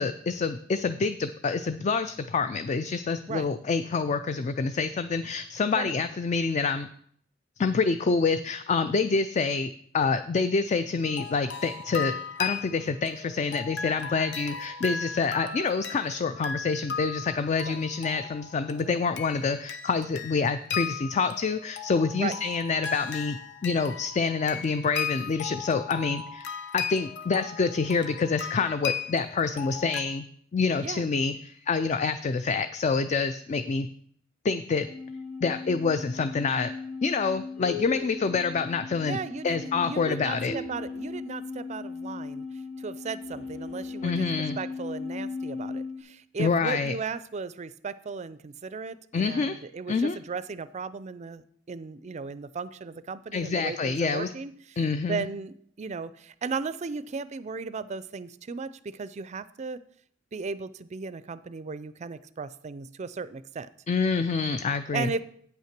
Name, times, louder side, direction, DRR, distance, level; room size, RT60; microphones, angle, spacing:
voice 1, 0.0-6.9 7.6-23.4 23.6-26.5 26.7-30.2 30.5-33.9 34.4-34.9 35.4-36.7 37.0-39.2 39.4-40.5 44.0-44.6 46.4-46.9 49.1-49.6 49.9-50.2 53.3-54.3 54.8-55.2 63.9-65.2, left 4 dB, 40° left, 11 dB, 0.4 m, -27 dB
sound 1, 11.0-30.0, left 6 dB, 65° left, 0.7 m, -37 dB
sound 2, 34.8-46.0, left 4 dB, 85° left, 2.4 m, -37 dB
voice 2, 39.0-42.4 42.8-44.3 44.6-51.4 51.7-54.8 55.1-59.8 60.3-63.7 64.9-65.2, right 4 dB, 35° right, 15 dB, 0.4 m, -36 dB
9.1 x 5.7 x 5.9 m, 0.63 s
head